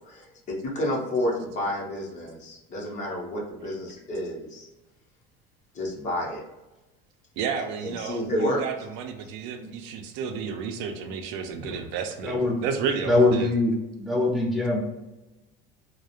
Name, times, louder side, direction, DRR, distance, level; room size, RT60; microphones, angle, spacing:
voice 1, 0.0-4.7 5.7-6.4 7.6-8.6, left 1 dB, 40° left, -1 dB, 0.6 m, -30 dB
voice 2, 7.4-13.5, right 6 dB, 70° right, 5 dB, 0.4 m, -32 dB
voice 3, 12.2-12.6 13.1-14.8, left 2 dB, ahead, -2 dB, 0.6 m, -23 dB
2.3 x 2.0 x 2.8 m, 1.0 s
cardioid pair, 130°, 20 cm